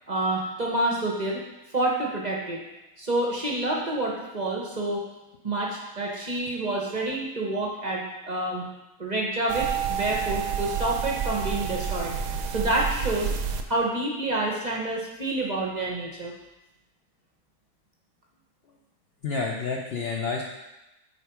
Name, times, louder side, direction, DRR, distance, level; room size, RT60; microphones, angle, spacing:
voice 1, 0.1-1.4 1.7-2.6 3.0-5.0 5.4-8.7 9.0-12.1 12.5-13.3 13.7-16.3, right 2 dB, 35° right, -2 dB, 0.7 m, -28 dB
sound 1, 9.5-13.6, right 7 dB, 70° right, 0.9 m, -29 dB
voice 2, 19.2-20.4, left 4 dB, 70° left, -1 dB, 0.5 m, -29 dB
6.6 x 4.6 x 4.7 m, 0.98 s
omnidirectional pair, 1.8 m